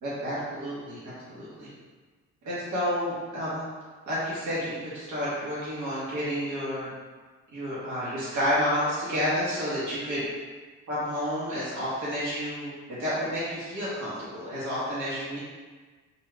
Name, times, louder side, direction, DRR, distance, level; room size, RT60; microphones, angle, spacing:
voice 1, 0.0-1.7 2.4-3.7 4.1-6.9 7.5-10.2 10.9-15.4, equal, 70° right, -9 dB, 1.1 m, -30 dB
2.6 x 2.3 x 3.2 m, 1.4 s
cardioid pair, 90°, 30 cm